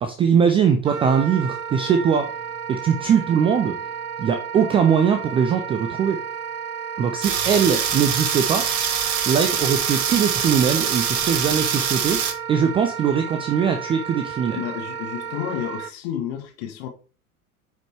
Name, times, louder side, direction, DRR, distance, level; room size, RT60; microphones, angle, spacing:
voice 1, 0.0-2.4 2.7-3.8 4.2-6.2 7.0-8.7 9.3-14.6, right 7 dB, 15° right, 0.4 m, -21 dB
Wind instrument woodwind instrument, 0.8-15.9, right 7 dB, 80° right, 0.6 m, -33 dB
sound 1, 7.2-12.3, right 8 dB, 45° right, 1.4 m, -24 dB
voice 2, 14.5-16.9, left 10 dB, 45° left, 1.6 m, -31 dB
9.0 x 5.1 x 3.2 m
figure-of-eight pair, 85°, 44 cm